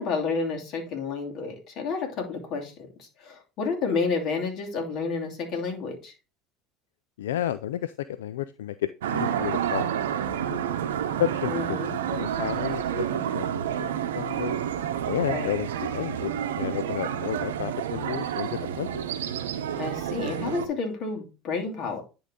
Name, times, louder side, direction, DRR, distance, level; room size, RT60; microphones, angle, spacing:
voice 1, 0.0-2.7 3.0-6.1 11.5-11.9 15.3-15.5 19.8-22.0, left 4 dB, 50° left, 2 dB, 2.7 m, -30 dB
voice 2, 7.2-9.9 10.2-10.6 11.2-14.5 15.1-19.1, left 12 dB, 80° left, 14 dB, 0.3 m, -32 dB
sound 1, 9.0-20.7, right 9 dB, 80° right, 0.8 m, -29 dB
10.5 x 3.9 x 3.6 m, 0.30 s
hypercardioid pair, 75°, 0 cm